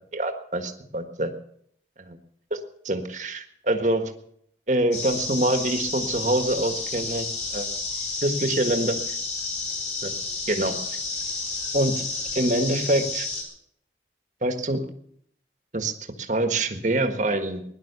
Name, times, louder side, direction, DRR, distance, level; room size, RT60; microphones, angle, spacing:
voice 1, 0.1-1.3 2.5-2.6 2.8-4.1 4.7-7.7 8.2-9.0 10.0-10.1 10.5-10.8 11.7-11.9 12.3-13.3 14.4-14.8 15.7-17.6, right 1 dB, 45° right, 6 dB, 1.5 m, -25 dB
sound 1, 4.9-13.4, left 3 dB, 40° left, 4.4 m, -31 dB
17.5 x 11.0 x 6.8 m, 0.68 s
head